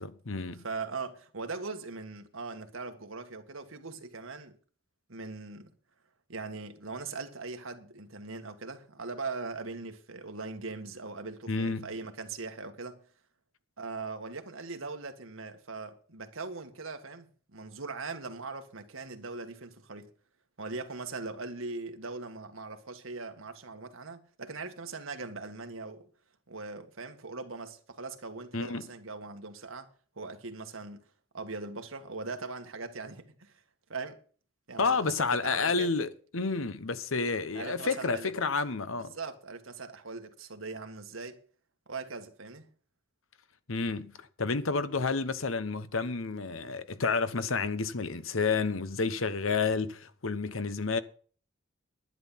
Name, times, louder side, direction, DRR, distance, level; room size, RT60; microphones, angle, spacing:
voice 1, 0.0-0.6 11.5-11.9 28.5-28.8 34.8-39.1 43.7-51.0, left 4 dB, 80° left, 1.0 m, -30 dB
voice 2, 0.6-4.6 5.1-5.7 6.3-13.0 13.8-20.1 20.6-26.1 26.5-29.9 30.2-31.0 31.3-33.6 33.9-34.2 34.7-35.9 37.5-38.3 39.1-41.4 41.9-42.7, right 3 dB, 80° right, 1.8 m, -40 dB
11.0 x 10.5 x 5.8 m
head